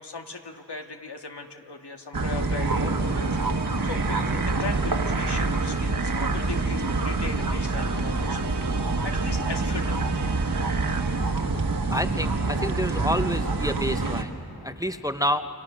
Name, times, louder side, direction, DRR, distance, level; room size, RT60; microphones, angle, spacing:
voice 1, 0.0-8.4 8.7-10.0, left 4 dB, 80° left, 3 dB, 1.8 m, -38 dB
sound 1, 2.1-14.2, right 3 dB, 55° right, 1.6 m, -26 dB
sound 2, 3.0-11.5, right 7 dB, 85° right, 1.2 m, -42 dB
voice 2, 11.9-14.4 14.6-15.4, equal, 10° right, 9 dB, 0.8 m, -28 dB
29.0 x 29.0 x 6.3 m, 3.0 s
wide cardioid pair, 65°, 40 cm